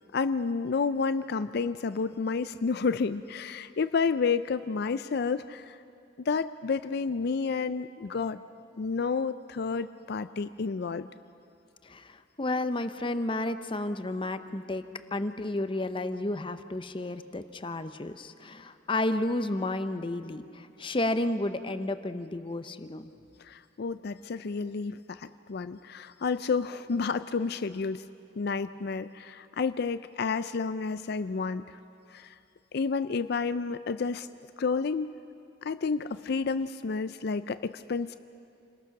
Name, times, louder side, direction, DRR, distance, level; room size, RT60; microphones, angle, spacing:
voice 1, 0.1-5.8 6.2-8.4 8.8-11.1 23.4-28.0 28.4-31.8 32.1-32.3 32.7-34.3 34.6-35.1 35.6-38.2, left 4 dB, 60° left, 12 dB, 0.4 m, -30 dB
voice 2, 11.8-23.1, left 2 dB, 30° left, 10 dB, 0.7 m, -32 dB
28.0 x 20.0 x 5.9 m, 2.5 s
head